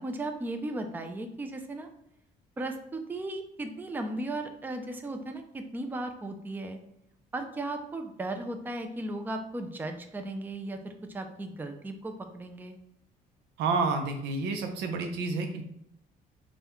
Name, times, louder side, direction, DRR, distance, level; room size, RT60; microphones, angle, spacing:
voice 1, 0.0-1.9 2.6-6.8 7.3-12.8, right 2 dB, 10° right, 5 dB, 0.4 m, -36 dB
voice 2, 13.6-15.6, right 4 dB, 85° right, 5 dB, 0.7 m, -29 dB
5.1 x 2.3 x 3.0 m, 0.78 s
cardioid pair, 110°, 17 cm